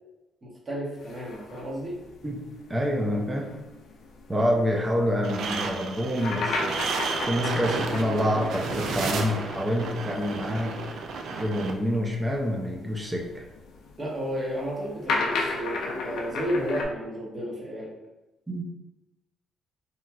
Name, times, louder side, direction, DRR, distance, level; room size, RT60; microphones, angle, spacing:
voice 1, 0.4-2.0 14.0-17.9, equal, 30° right, -5 dB, 1.1 m, -32 dB
sound 1, 1.0-10.0 10.2-10.3 11.2-16.8, left 3 dB, 75° left, 0.4 m, -35 dB
voice 2, 2.2-3.6 4.3-6.8 7.3-10.7 11.3-13.4 18.5-18.6, equal, 15° right, -1 dB, 0.5 m, -27 dB
sound 2, 5.2-11.7, right 4 dB, 75° right, 0.3 m, -32 dB
2.9 x 2.4 x 2.3 m, 0.99 s
cardioid pair, 90°, 0 cm